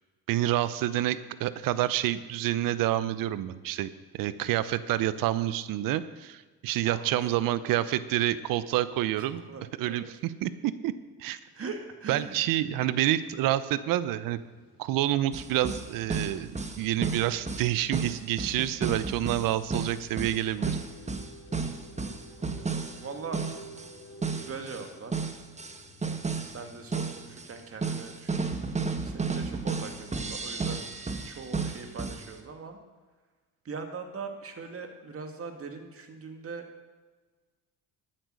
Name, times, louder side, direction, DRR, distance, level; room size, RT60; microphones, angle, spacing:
voice 1, 0.3-3.9 4.1-9.4 9.8-10.9 11.2-11.4 12.1-14.4 14.8-16.5 16.8-20.7, right 13 dB, 75° right, 15 dB, 0.8 m, -28 dB
voice 2, 6.8-7.2 9.2-10.1 11.5-12.4 20.6-20.9 22.4-23.4 24.3-25.2 26.5-28.6 29.0-30.8 31.2-32.8 33.6-36.6, right 4 dB, 40° right, 5 dB, 2.2 m, -41 dB
sound 1, 14.2-30.2, equal, 55° left, 2.3 m, -53 dB
sound 2, 15.3-24.0 24.2-26.6 26.9-32.3, right 4 dB, 20° right, 1.3 m, -33 dB
12.5 x 8.9 x 6.4 m, 1.3 s
supercardioid pair, 80°, 34 cm